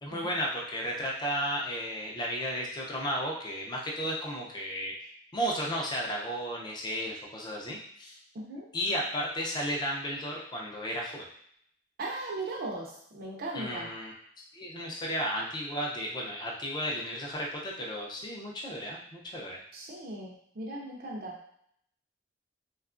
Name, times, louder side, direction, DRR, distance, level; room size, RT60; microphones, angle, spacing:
voice 1, 0.0-4.9 5.3-8.1 8.7-11.2 13.5-14.1 14.5-19.6, equal, 25° left, -2 dB, 0.5 m, -33 dB
voice 2, 8.3-8.7 12.0-13.9 19.7-21.4, right 2 dB, 50° right, -3 dB, 0.5 m, -38 dB
2.8 x 2.3 x 2.4 m, 0.67 s
head